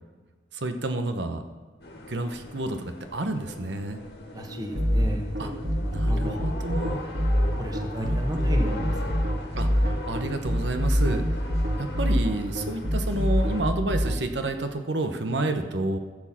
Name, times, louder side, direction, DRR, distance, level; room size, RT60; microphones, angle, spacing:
voice 1, 0.5-1.4 2.1-2.8 3.1-4.0 5.4-5.5 5.9-7.0 8.0-8.5 9.6-9.7 10.1-11.2 11.8-16.0, right 2 dB, 75° right, 7 dB, 1.0 m, -29 dB
sound 1, 1.8-13.6, left 1 dB, 65° left, 2.3 m, -40 dB
voice 2, 4.3-6.5 7.6-9.3, equal, 20° right, 3 dB, 1.3 m, -34 dB
sound 2, 4.7-14.2, equal, 55° right, 1.7 m, -24 dB
15.5 x 7.4 x 5.9 m, 1.4 s
head